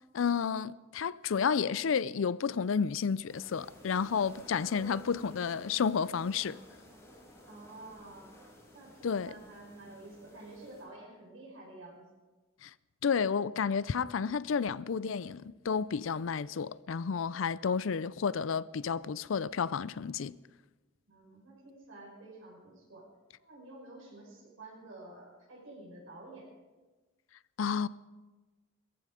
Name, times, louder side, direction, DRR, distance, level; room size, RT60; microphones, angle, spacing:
voice 1, 0.1-6.6 9.0-9.3 12.6-12.7 13.0-20.3 27.6-27.9, left 6 dB, 70° left, 0.4 m, -31 dB
sound 1, 3.3-10.8, left 1 dB, 15° left, 5.0 m, -54 dB
voice 2, 7.5-8.3 8.7-12.0 21.1-23.1 23.4-26.5, right 2 dB, 80° right, 5.9 m, -50 dB
17.5 x 15.0 x 5.0 m
head